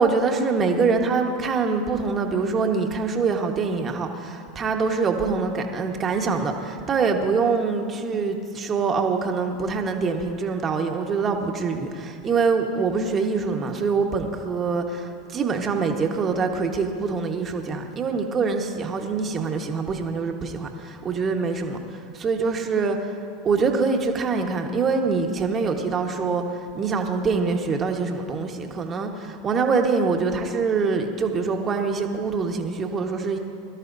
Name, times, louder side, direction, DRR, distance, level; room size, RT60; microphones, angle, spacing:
voice 1, 0.0-33.4, right 4 dB, 30° right, 3 dB, 1.5 m, -24 dB
21.5 x 13.0 x 2.7 m, 2.4 s
hypercardioid pair, 85°, 0 cm